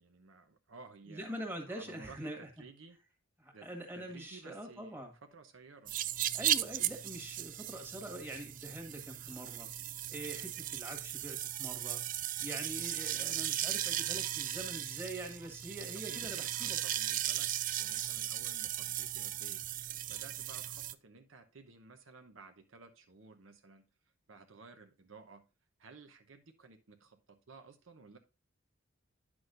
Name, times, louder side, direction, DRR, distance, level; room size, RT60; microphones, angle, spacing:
voice 1, 0.0-3.0 3.5-3.7 3.9-5.9 16.0-17.5 17.8-19.6 20.1-23.8 24.3-25.4 25.8-28.2, right 4 dB, 70° right, 6 dB, 0.9 m, -55 dB
voice 2, 1.1-2.4 3.4-5.1 6.3-9.7 10.1-12.0 12.4-16.8, right 1 dB, 10° right, 2 dB, 1.6 m, -44 dB
sound 1, 5.9-20.9, right 12 dB, 40° right, 0.3 m, -37 dB
9.7 x 6.2 x 2.5 m, 0.31 s
head